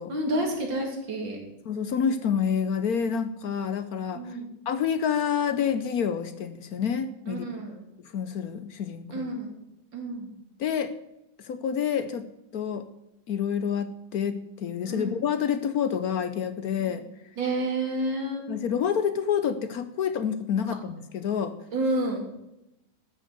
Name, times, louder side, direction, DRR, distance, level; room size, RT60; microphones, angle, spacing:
voice 1, 0.1-1.4 4.1-4.5 7.3-7.8 9.1-9.6 9.9-10.3 14.9-15.2 16.8-17.0 17.4-18.5 21.7-22.3, right 1 dB, 65° right, 1 dB, 3.4 m, -30 dB
voice 2, 1.7-4.4 4.7-7.5 8.0-9.3 10.6-10.9 11.4-12.3 12.5-12.9 13.3-17.0 18.5-21.6, left 7 dB, 65° left, 11 dB, 1.0 m, -28 dB
13.0 x 6.4 x 7.9 m, 0.89 s
omnidirectional pair, 2.2 m